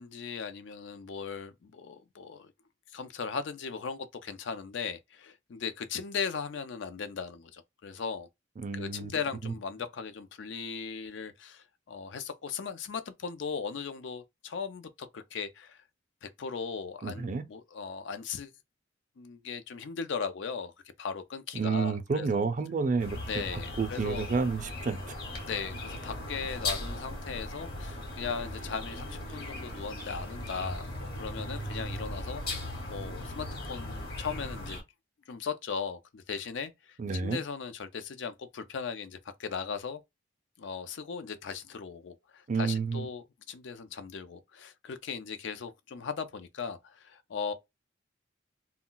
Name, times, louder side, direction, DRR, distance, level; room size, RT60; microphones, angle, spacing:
voice 1, 0.0-2.5 2.9-8.3 8.7-15.8 16.2-18.5 19.2-20.7 21.0-22.4 23.3-24.4 25.5-34.8 35.3-40.0 40.6-47.5, left 6 dB, 70° left, 0.4 m, -38 dB
voice 2, 8.6-9.1 9.4-9.5 17.0-17.4 21.5-25.2 37.0-37.4 42.5-43.1, right 4 dB, 40° right, 0.4 m, -30 dB
sound 1, 23.0-34.8, left 1 dB, 50° left, 1.1 m, -38 dB
2.3 x 2.2 x 3.7 m
head